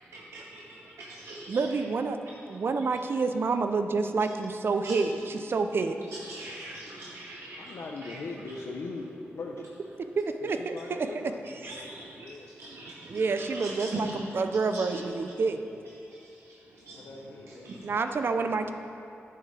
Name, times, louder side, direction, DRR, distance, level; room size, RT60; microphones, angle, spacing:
voice 1, 0.1-1.8 4.8-5.0 6.1-8.2 11.6-14.2 14.7-15.0 16.1-17.1 17.5-17.9, right 2 dB, 80° right, -4 dB, 0.9 m, -42 dB
voice 2, 1.5-2.2 2.5-6.0 10.2-11.1 13.1-15.6 17.8-18.7, right 4 dB, 55° right, 8 dB, 0.5 m, -28 dB
voice 3, 7.6-9.7 10.4-12.5 17.0-17.7, left 3 dB, 70° left, 0 dB, 0.7 m, -40 dB
11.0 x 7.8 x 3.4 m, 2.7 s
cardioid pair, 85°, 5 cm